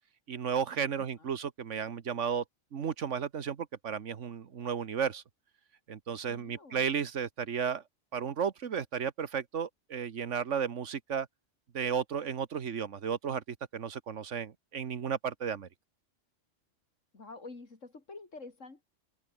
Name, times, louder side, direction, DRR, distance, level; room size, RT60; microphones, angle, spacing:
voice 1, 0.3-2.4 2.7-5.2 5.9-7.8 8.1-11.3 11.7-13.4 13.7-15.7, right 7 dB, 75° right, 1.5 m, -33 dB
voice 2, 0.9-1.3 6.3-6.9 17.1-18.8, left 3 dB, 85° left, 3.6 m, -48 dB
omnidirectional pair, 1.3 m